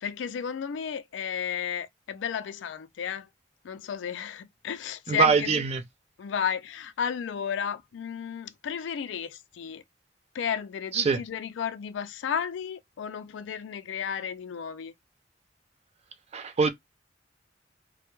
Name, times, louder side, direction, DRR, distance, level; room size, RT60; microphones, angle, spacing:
voice 1, 0.0-3.3 3.6-5.7 6.2-9.8 10.3-14.9, left 7 dB, 85° left, 0.3 m, -33 dB
voice 2, 5.1-5.8 10.9-11.2 16.3-16.7, right 5 dB, 35° right, 0.3 m, -23 dB
2.1 x 2.1 x 2.9 m
head